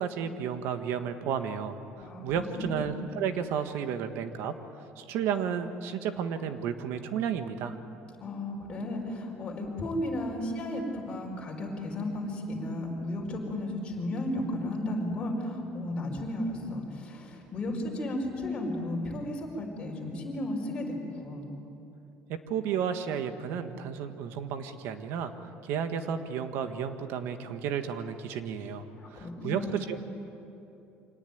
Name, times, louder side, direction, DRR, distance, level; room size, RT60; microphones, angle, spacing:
voice 1, 0.0-4.5 5.0-7.8 22.3-29.9, right 7 dB, 65° right, 8 dB, 1.6 m, -32 dB
voice 2, 2.6-2.9 8.2-21.5 29.0-29.8, left 1 dB, 20° left, -2 dB, 4.6 m, -34 dB
25.5 x 18.5 x 9.3 m, 2.8 s
cardioid pair, 175°, 4 cm